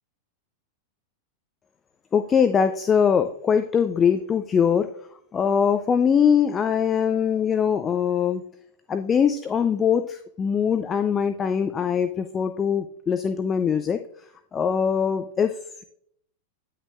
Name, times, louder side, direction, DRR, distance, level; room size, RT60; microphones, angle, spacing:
voice 1, 2.1-4.9 5.3-8.4 8.9-14.0 14.5-15.8, left 7 dB, 20° left, 9 dB, 0.4 m, -22 dB
10.0 x 6.1 x 2.4 m, 0.67 s
figure-of-eight pair, 90°, 0 cm